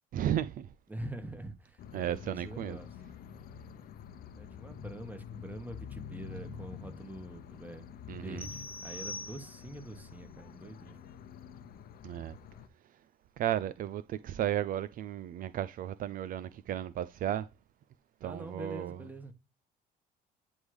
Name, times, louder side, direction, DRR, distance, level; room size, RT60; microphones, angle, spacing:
voice 1, 0.1-0.7 1.9-2.8 8.1-8.5 12.0-12.3 13.4-17.5 18.2-19.0, right 11 dB, 55° right, 0.4 m, -34 dB
voice 2, 0.9-2.9 4.3-7.9 8.2-11.0 18.2-19.3, right 1 dB, 10° right, 1.3 m, -45 dB
sound 1, 1.8-12.7, left 8 dB, 60° left, 0.8 m, -48 dB
sound 2, 8.4-9.9, left 2 dB, 15° left, 0.5 m, -43 dB
9.7 x 3.5 x 3.1 m
cardioid pair, 110°, 17 cm